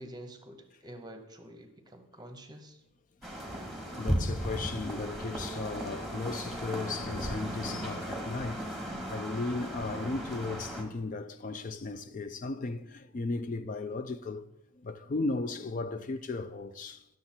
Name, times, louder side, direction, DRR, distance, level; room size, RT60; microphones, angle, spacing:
voice 1, 0.0-2.8, right 1 dB, 20° right, 0.8 m, -48 dB
sound 1, 3.2-10.8, equal, ahead, 1.2 m, -36 dB
voice 2, 4.0-14.5 14.7-17.1, left 3 dB, 35° left, 0.3 m, -36 dB
11.0 x 6.6 x 4.3 m
head